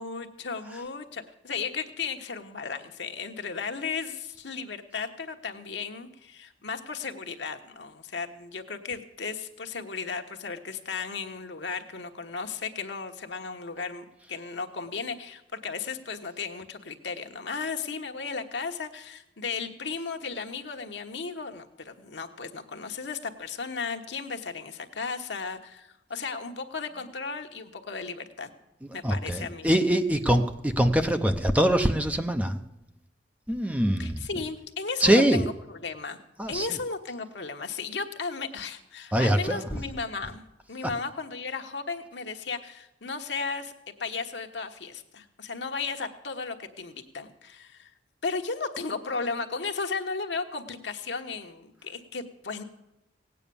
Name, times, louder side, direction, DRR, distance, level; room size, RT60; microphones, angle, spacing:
voice 1, 0.0-28.5 28.9-29.7 34.0-36.2 36.5-43.7 44.0-47.9 48.2-52.6, left 4 dB, 70° left, 5 dB, 1.2 m, -35 dB
voice 2, 29.0-32.6 33.5-34.3 35.0-35.4 36.4-36.7 39.1-39.6, right 1 dB, 10° right, 7 dB, 0.7 m, -23 dB
17.0 x 9.1 x 6.9 m, 0.91 s
head